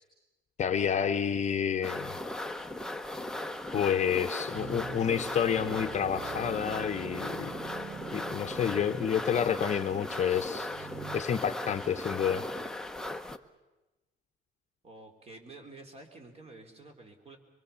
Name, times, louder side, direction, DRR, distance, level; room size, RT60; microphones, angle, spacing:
voice 1, 0.6-2.2 3.7-7.5 8.1-10.9 11.1-12.5, left 8 dB, 35° left, 7 dB, 1.0 m, -29 dB
sound 1, 1.8-13.4, left 1 dB, 5° left, 0.8 m, -38 dB
sound 2, 2.3-11.2, right 6 dB, 80° right, 2.0 m, -53 dB
sound 3, 4.5-11.2, right 8 dB, 50° right, 0.9 m, -46 dB
voice 2, 14.8-17.4, right 2 dB, 30° right, 4 dB, 3.5 m, -50 dB
24.0 x 23.5 x 7.0 m, 1.1 s
cardioid pair, 150°, 20 cm